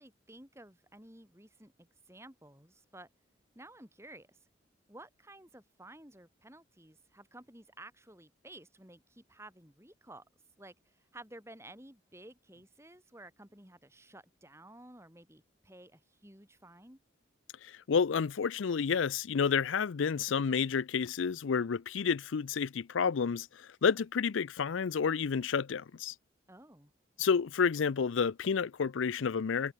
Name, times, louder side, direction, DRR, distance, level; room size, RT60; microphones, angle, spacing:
voice 1, 0.0-3.1 3.6-4.4 4.9-10.2 10.6-17.0 26.5-26.9, right 1 dB, 15° right, 5.2 m, -53 dB
voice 2, 17.6-26.1 27.2-29.7, left 6 dB, 85° left, 0.5 m, -30 dB
head